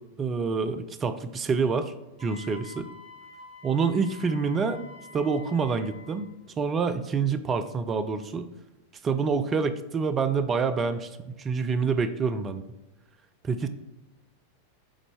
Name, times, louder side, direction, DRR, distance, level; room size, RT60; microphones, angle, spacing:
voice 1, 0.2-1.9 2.2-2.9 3.6-4.8 5.1-6.3 6.6-8.5 9.0-12.6 13.4-13.7, right 5 dB, 25° right, 10 dB, 0.5 m, -27 dB
Wind instrument woodwind instrument, 2.2-6.3, left 3 dB, 60° left, 2.2 m, -48 dB
7.2 x 4.0 x 3.5 m, 1.0 s
figure-of-eight pair, 90°, 0 cm